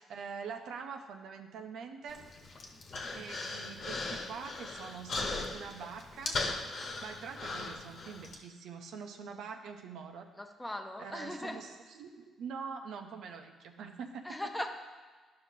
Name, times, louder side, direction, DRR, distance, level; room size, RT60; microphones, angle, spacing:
voice 1, 0.0-2.2 3.1-6.4 7.0-10.3 11.0-11.7 12.0-14.2, right 6 dB, 80° right, 4 dB, 0.6 m, -44 dB
Human voice, 2.1-8.3, left 3 dB, 55° left, 1.2 m, -38 dB
voice 2, 10.4-11.6 14.2-14.7, left 1 dB, 10° left, 4 dB, 0.8 m, -39 dB
12.0 x 5.6 x 2.7 m, 1.4 s
cardioid pair, 90°, 0 cm